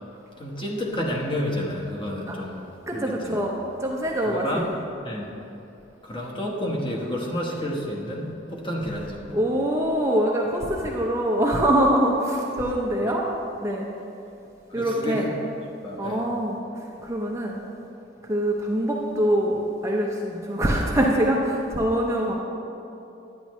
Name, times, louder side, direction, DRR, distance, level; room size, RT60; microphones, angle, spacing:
voice 1, 0.4-2.6 2.9-3.4 4.3-4.7 5.0-5.3 6.0-9.4 14.8-15.3 15.8-16.2, equal, 25° left, -3 dB, 1.1 m, -30 dB
voice 2, 2.9-4.7 9.3-13.3 13.6-13.9 14.7-15.3 16.0-17.6 18.2-22.3, right 1 dB, 15° right, -2 dB, 0.6 m, -24 dB
10.5 x 9.2 x 3.1 m, 2.8 s
head